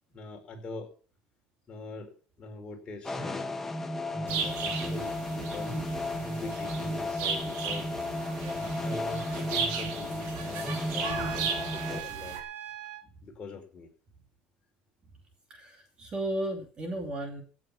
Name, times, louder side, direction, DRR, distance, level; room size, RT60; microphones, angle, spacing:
voice 1, 0.1-0.9 1.7-3.5 4.1-7.9 8.5-12.4 13.2-13.9, left 2 dB, 25° left, 1 dB, 4.8 m, -42 dB
sound 1, 3.1-12.0, left 1 dB, 10° left, 1.2 m, -34 dB
sound 2, 4.3-12.4, right 6 dB, 75° right, 3.1 m, -36 dB
Trumpet, 11.0-13.0, right 12 dB, 60° right, 2.2 m, -40 dB
voice 2, 15.5-17.4, right 1 dB, 25° right, 4 dB, 2.6 m, -34 dB
16.5 x 7.7 x 6.0 m, 0.40 s
cardioid pair, 155°, 3 cm